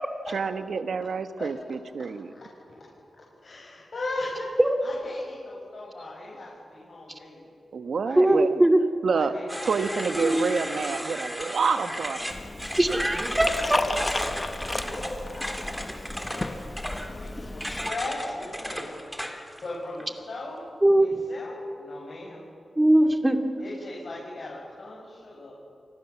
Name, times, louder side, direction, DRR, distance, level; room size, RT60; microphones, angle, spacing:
voice 1, 0.3-2.3 7.7-8.5 9.0-12.4, right 5 dB, 75° right, 9 dB, 1.4 m, -28 dB
voice 2, 3.4-4.5 4.8-7.4 8.0-8.4 9.1-9.4 10.0-10.3 13.6-14.5 14.8-16.8 17.0-19.0 19.6-20.6 21.0-22.5 23.6-25.5, left 2 dB, 60° left, -5 dB, 7.2 m, -38 dB
voice 3, 8.2-8.8 10.2-10.5 12.8-13.8 20.8-21.2 22.8-23.4, right 1 dB, 15° right, 5 dB, 2.7 m, -20 dB
sound 1, 9.5-19.6, equal, ahead, 3.7 m, -34 dB
Liquid, 12.3-17.9, left 2 dB, 30° left, 1.4 m, -33 dB
30.0 x 25.5 x 7.3 m, 2.5 s
cardioid pair, 70°, 0 cm